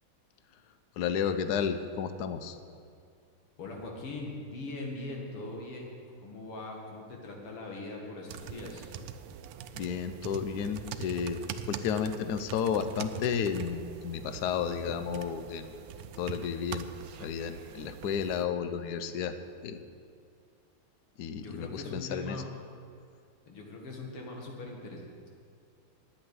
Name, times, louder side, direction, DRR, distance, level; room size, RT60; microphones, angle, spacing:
voice 1, 1.0-2.6 9.7-11.4 11.7-15.7 16.2-19.3 19.6-19.8 21.2-22.4, left 7 dB, 65° left, 10 dB, 1.0 m, -32 dB
voice 2, 3.6-8.9 21.4-22.5 23.4-25.3, left 2 dB, 85° left, 0 dB, 2.8 m, -41 dB
sound 1, 8.3-18.5, right 8 dB, 85° right, 1.5 m, -43 dB
9.3 x 8.7 x 9.7 m, 2.3 s
omnidirectional pair, 2.4 m